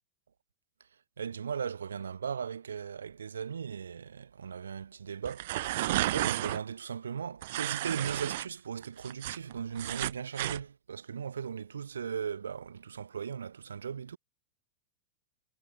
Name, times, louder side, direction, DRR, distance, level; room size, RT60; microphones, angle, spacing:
voice 1, 1.2-14.2, right 7 dB, 70° right, 5.1 m, -38 dB
sound 1, 5.2-6.6 7.4-8.5 8.8-10.6, right 16 dB, 55° right, 5.1 m, -32 dB
figure-of-eight pair, 90°, 0 cm